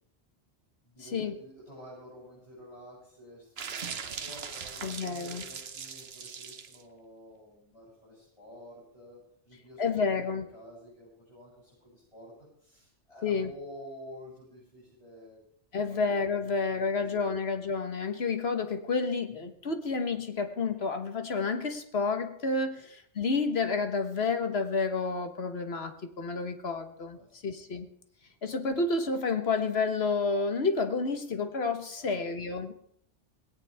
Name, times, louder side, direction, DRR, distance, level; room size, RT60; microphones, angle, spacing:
voice 1, 0.8-9.2 9.4-12.3 12.6-15.4 15.7-17.3 19.3-19.5 22.8-22.9 27.1-27.5 28.1-28.2 32.0-32.3, equal, 25° left, -8 dB, 7.9 m, -50 dB
sound 1, 3.6-6.8, right 6 dB, 65° right, 1.2 m, -40 dB
voice 2, 4.8-5.4 9.8-10.4 13.2-13.5 15.7-27.2 27.4-27.9 28.4-32.7, left 4 dB, 65° left, 7 dB, 1.5 m, -30 dB
19.0 x 17.5 x 3.5 m, 0.67 s
omnidirectional pair, 1.2 m